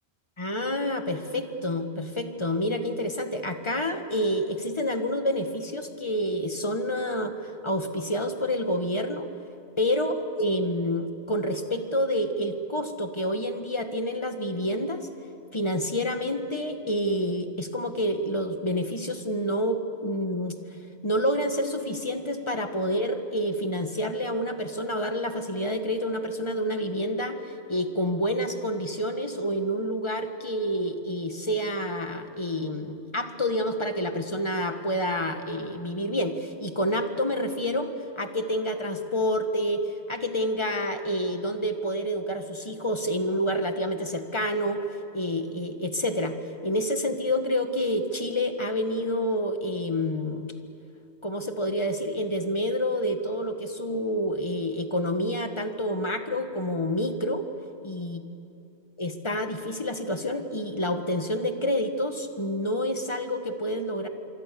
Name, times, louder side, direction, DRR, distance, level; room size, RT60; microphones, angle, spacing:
voice 1, 0.4-9.3 9.8-15.1 15.5-20.5 21.0-27.4 27.7-37.9 38.2-39.8 40.1-44.8 45.1-46.3 46.6-50.5 51.2-57.4 57.8-58.2 59.0-64.1, equal, 25° left, 6 dB, 1.7 m, -28 dB
26.5 x 24.0 x 7.0 m, 2.7 s
omnidirectional pair, 1.1 m